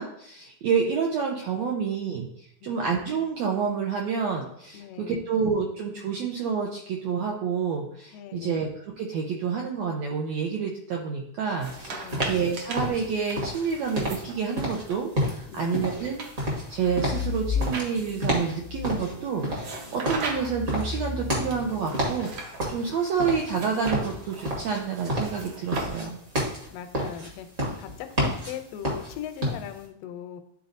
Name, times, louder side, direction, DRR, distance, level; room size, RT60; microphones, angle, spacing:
voice 1, 0.0-8.7 9.0-26.2, right 6 dB, 85° right, 0 dB, 1.5 m, -29 dB
voice 2, 2.6-3.0 4.7-5.3 8.1-8.6 11.9-12.3 15.5-15.8 26.7-27.5 27.8-30.4, left 10 dB, 85° left, 7 dB, 2.3 m, -39 dB
sound 1, 11.5-14.9 15.5-18.4 19.6-20.7 21.5-22.6 23.5-26.3, right 4 dB, 65° right, 1.5 m, -39 dB
sound 2, 11.6-29.8, equal, 45° right, 0.9 m, -31 dB
sound 3, 16.7-18.1 18.6-24.1 25.6-25.9, left 5 dB, 50° left, 0.6 m, -35 dB
11.5 x 4.0 x 2.6 m, 0.71 s
omnidirectional pair, 3.9 m